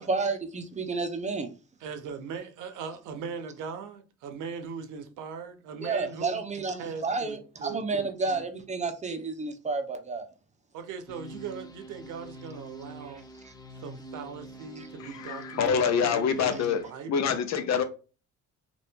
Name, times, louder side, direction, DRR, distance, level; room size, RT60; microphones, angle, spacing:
voice 1, 0.0-1.5 5.8-10.3 13.4-13.5 14.8-14.9, right 4 dB, 25° right, 0.7 m, -31 dB
voice 2, 1.8-6.4 6.8-8.1 10.7-13.3 13.7-17.3, right 6 dB, 85° right, 0.7 m, -40 dB
sound 1, 11.1-16.8, right 1 dB, 15° left, 0.5 m, -45 dB
voice 3, 15.0-16.8 17.1-17.8, left 7 dB, 60° left, 0.7 m, -26 dB
2.8 x 2.5 x 3.4 m
cardioid pair, 90°, 30 cm